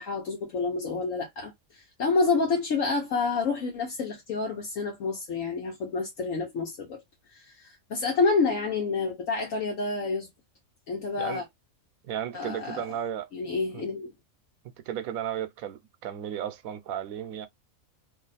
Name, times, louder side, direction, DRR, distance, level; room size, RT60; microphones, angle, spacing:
voice 1, 0.0-7.0 7.3-10.3 10.9-11.4 12.3-12.8 13.3-14.1, left 4 dB, 70° left, 1.2 m, -28 dB
voice 2, 12.0-13.3 13.7-13.9 14.9-17.5, right 9 dB, 80° right, 1.0 m, -34 dB
2.7 x 2.5 x 4.0 m
omnidirectional pair, 1.5 m